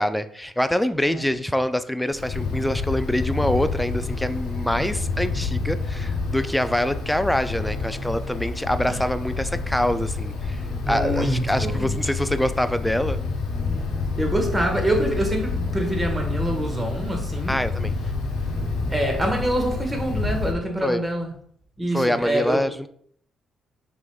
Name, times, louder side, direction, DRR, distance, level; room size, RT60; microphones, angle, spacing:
voice 1, 0.0-10.6 10.9-13.2 17.5-17.9 20.8-21.0 21.9-22.9, left 1 dB, 5° left, 11 dB, 0.3 m, -25 dB
Wind, 2.1-20.5, left 3 dB, 85° left, 1.0 m, -28 dB
voice 2, 10.8-12.0 14.2-17.6 18.9-21.3 21.8-22.6, right 1 dB, 20° right, 2 dB, 1.3 m, -25 dB
6.0 x 3.5 x 2.3 m, 0.63 s
cardioid pair, 90°, 0 cm